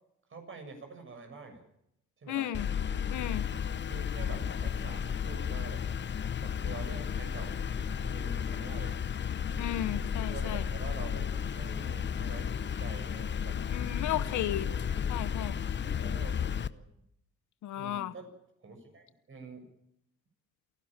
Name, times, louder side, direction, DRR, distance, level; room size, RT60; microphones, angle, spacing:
voice 1, 0.3-1.6 2.2-2.5 3.9-5.8 6.4-7.6 8.0-9.0 10.2-12.5 12.8-13.6 14.0-14.5 16.0-16.9 17.8-18.3 18.6-19.7, right 3 dB, 40° right, 5 dB, 7.1 m, -46 dB
voice 2, 2.3-2.7 3.1-3.4 9.6-10.6 13.7-14.7 15.1-15.6 17.6-18.1, left 12 dB, 75° left, 14 dB, 1.1 m, -34 dB
sound 1, 2.5-16.7, left 7 dB, 35° left, 0.8 m, -33 dB
28.5 x 12.0 x 8.9 m, 0.79 s
cardioid pair, 90°, 30 cm